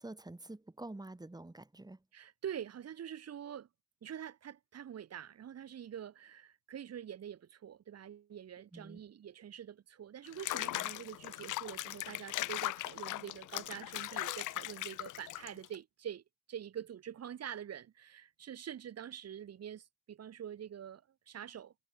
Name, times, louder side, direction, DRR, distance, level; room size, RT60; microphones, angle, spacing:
voice 1, 0.0-2.0 8.7-9.0, right 2 dB, 15° right, 7.2 m, -47 dB
voice 2, 2.1-3.7 4.0-16.2 16.5-21.7, right 9 dB, 55° right, 2.4 m, -46 dB
Water / Bathtub (filling or washing), 10.3-15.8, left 17 dB, 90° left, 1.3 m, -39 dB
cardioid pair, 90°, 30 cm